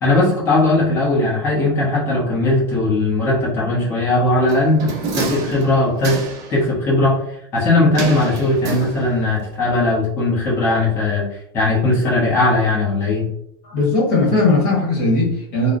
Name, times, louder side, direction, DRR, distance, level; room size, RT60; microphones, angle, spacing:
voice 1, 0.0-6.2 6.5-7.1 7.5-11.2 11.5-13.2, left 2 dB, 20° left, -6 dB, 0.8 m, -18 dB
sound 1, 4.5-6.6 7.9-9.4 9.7-9.8, right 3 dB, 30° right, 0.4 m, -28 dB
voice 2, 13.6-15.8, left 2 dB, 50° left, -4 dB, 1.3 m, -18 dB
3.0 x 2.0 x 2.5 m, 0.73 s
supercardioid pair, 170°, 12 cm